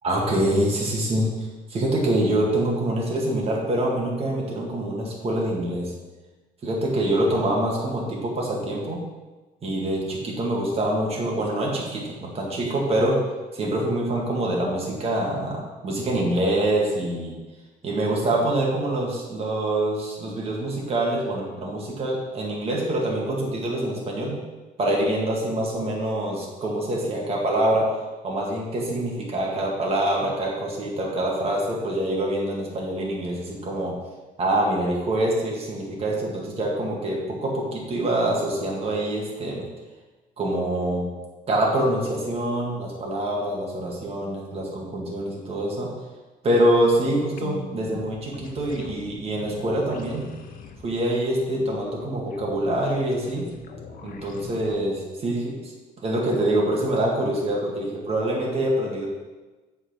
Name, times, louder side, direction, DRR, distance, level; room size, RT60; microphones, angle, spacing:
voice 1, 0.0-1.3 1.7-5.9 6.6-9.0 9.6-13.2 13.5-17.3 17.8-24.3 24.8-27.9 28.2-34.0 34.4-39.6 40.4-41.1 41.5-45.9 46.4-50.2 50.8-53.5 54.0-55.7 56.0-59.1, right 1 dB, 35° right, -3 dB, 2.2 m, -25 dB
sound 1, 47.4-54.8, left 5 dB, 55° left, 1.0 m, -42 dB
8.0 x 4.5 x 6.0 m, 1.2 s
cardioid pair, 110°, 17 cm